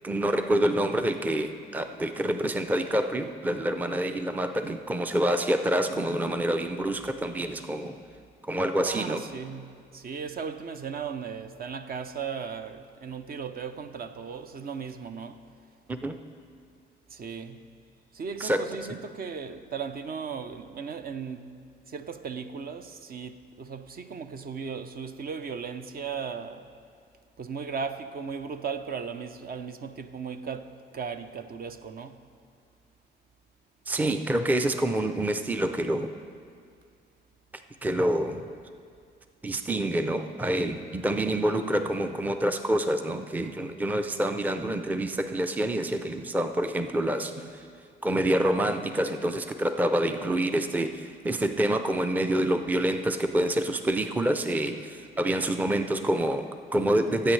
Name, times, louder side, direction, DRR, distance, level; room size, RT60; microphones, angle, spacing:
voice 1, 0.0-8.0 8.5-9.2 15.9-16.2 18.4-19.0 33.9-36.1 37.8-38.5 39.4-47.6 48.0-57.3, right 1 dB, 10° right, 0.5 m, -27 dB
voice 2, 8.8-15.5 17.1-17.7 18.1-21.5 21.9-26.7 27.4-32.2, right 6 dB, 50° right, 0.6 m, -37 dB
18.5 x 8.3 x 3.3 m
cardioid pair, 90°, 20 cm